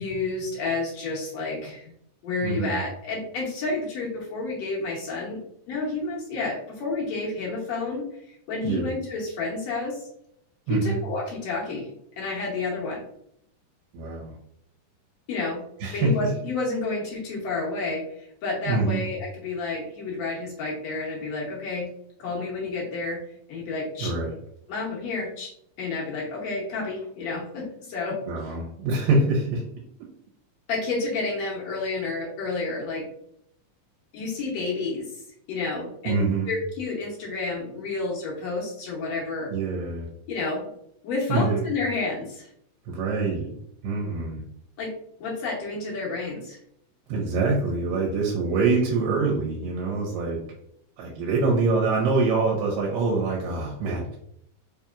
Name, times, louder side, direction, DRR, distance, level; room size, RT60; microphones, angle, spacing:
voice 1, 0.0-1.9 2.2-5.4 5.7-10.1 10.7-11.9 12.2-13.1 15.3-15.6 15.9-21.9 22.2-23.2 23.5-24.1 24.7-28.2 30.7-33.1 34.1-35.2 35.5-39.5 40.3-40.7 41.0-42.5 44.8-44.9 45.2-46.6, left 3 dB, 75° left, -4 dB, 1.6 m, -30 dB
voice 2, 2.4-2.8 8.6-8.9 10.7-11.0 13.9-14.4 15.8-16.1 18.7-19.1 24.0-24.4 28.3-29.6 36.1-36.6 39.5-40.1 41.3-41.6 42.9-43.5 43.8-44.4 47.1-50.4 51.0-54.2, right 3 dB, 85° right, -2 dB, 2.4 m, -25 dB
5.1 x 2.9 x 2.3 m, 0.71 s
omnidirectional pair, 4.0 m